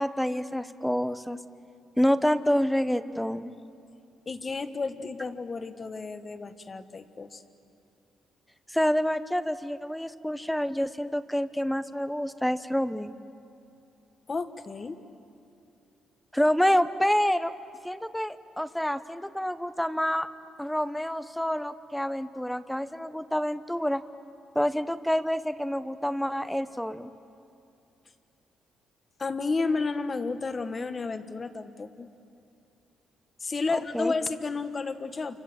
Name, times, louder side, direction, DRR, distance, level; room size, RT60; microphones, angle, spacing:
voice 1, 0.0-1.4 2.0-3.5 8.7-13.2 16.3-17.5 17.8-20.3 20.6-24.0 24.5-27.1 33.7-34.1, equal, 5° left, 12 dB, 1.0 m, -27 dB
voice 2, 4.3-7.4 14.3-15.0 29.2-32.1 33.4-35.4, left 4 dB, 35° left, 9 dB, 1.5 m, -32 dB
28.0 x 25.5 x 7.4 m, 2.7 s
cardioid pair, 90°, 0 cm